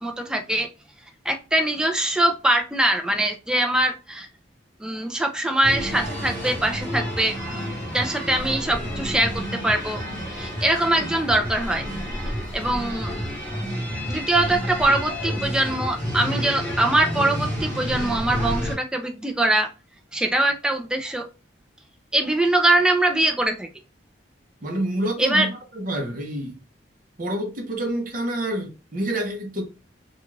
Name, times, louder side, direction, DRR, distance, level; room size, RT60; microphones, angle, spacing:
voice 1, 0.0-0.7 1.3-4.3 4.8-7.3 7.9-9.3 9.6-10.0 10.3-11.8 12.5-13.1 14.1-19.7 20.1-21.3 22.1-23.7 25.2-25.5, right 1 dB, 5° right, 0.4 m, -22 dB
sound 1, 5.6-18.8, equal, 15° left, 1.0 m, -30 dB
voice 2, 24.6-26.6 27.2-29.6, right 1 dB, 45° right, 0.7 m, -28 dB
2.4 x 2.3 x 3.1 m
head